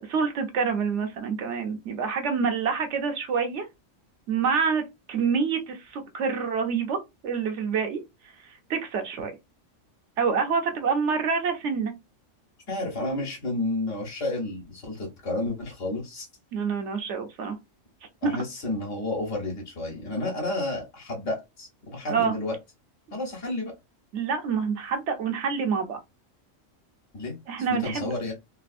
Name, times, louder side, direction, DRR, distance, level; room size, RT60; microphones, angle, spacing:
voice 1, 0.0-3.7 4.3-7.0 7.2-8.0 8.7-9.3 10.2-11.9 16.5-17.6 18.2-18.3 22.1-22.3 24.1-26.0 27.5-28.1, right 5 dB, 65° right, 1.0 m, -27 dB
voice 2, 12.7-16.3 18.2-22.5 23.1-23.7 27.1-28.3, left 2 dB, 70° left, 1.4 m, -31 dB
3.3 x 2.4 x 2.5 m
omnidirectional pair, 1.3 m